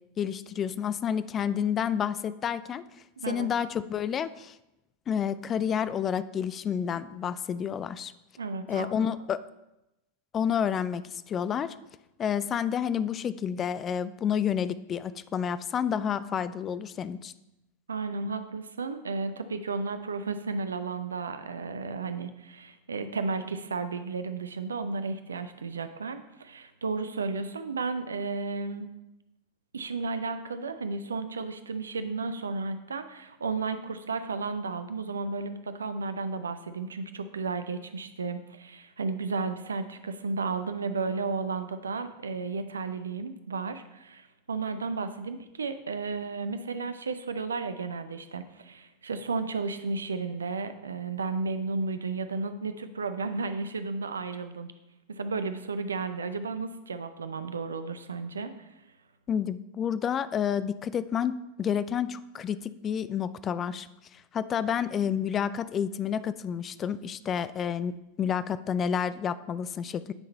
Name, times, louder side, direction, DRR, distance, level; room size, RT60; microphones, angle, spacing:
voice 1, 0.2-2.8 3.3-4.6 5.1-8.1 8.7-9.4 10.3-11.7 12.2-17.3 59.3-70.1, left 8 dB, 25° left, 15 dB, 0.3 m, -30 dB
voice 2, 3.2-3.5 8.4-8.9 17.9-28.9 29.7-54.7 55.2-58.7, right 4 dB, 70° right, 10 dB, 0.5 m, -33 dB
9.7 x 3.8 x 4.1 m, 0.92 s
figure-of-eight pair, 90°, 0 cm